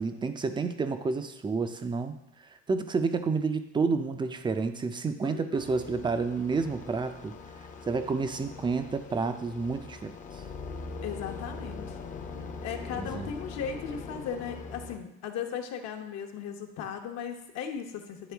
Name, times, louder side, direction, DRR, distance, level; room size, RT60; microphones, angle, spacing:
voice 1, 0.0-2.2 2.7-7.3 7.8-10.4 12.9-13.3, right 4 dB, 15° right, 8 dB, 0.5 m, -30 dB
voice 2, 5.2-5.9 11.0-12.0 12.6-18.3, left 7 dB, 60° left, 4 dB, 1.0 m, -37 dB
sound 1, 5.6-15.0, left 4 dB, 25° left, 0.7 m, -42 dB
10.5 x 3.6 x 3.4 m, 0.85 s
supercardioid pair, 115°, 30 cm